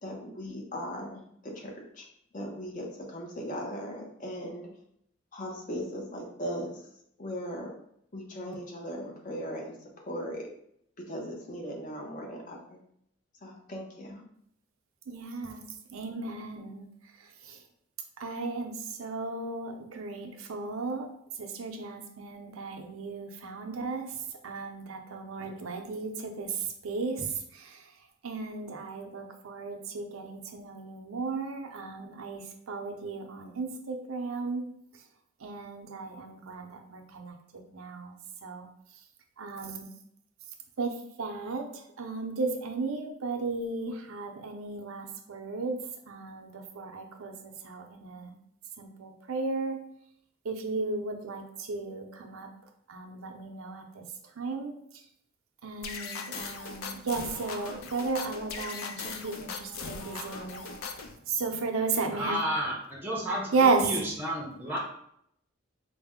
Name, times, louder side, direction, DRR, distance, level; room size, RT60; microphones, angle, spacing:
voice 1, 0.0-2.1 2.3-4.7 5.3-6.8 7.2-7.7 8.1-9.8 10.1-10.5 11.1-12.8 13.4-14.2, equal, 40° left, 0 dB, 0.7 m, -38 dB
voice 2, 15.1-15.6 15.9-17.6 18.2-34.6 34.9-35.1 35.4-38.1 38.4-39.0 39.4-39.9 40.8-48.4 48.8-49.8 50.4-52.5 52.9-55.1 55.6-62.4 63.5-64.0, right 4 dB, 85° right, 4 dB, 0.6 m, -34 dB
sound 1, 55.8-61.2, left 4 dB, 90° left, 0.4 m, -39 dB
voice 3, 62.2-63.5 63.8-64.8, equal, 10° right, -3 dB, 0.6 m, -31 dB
4.1 x 2.1 x 3.5 m, 0.71 s
head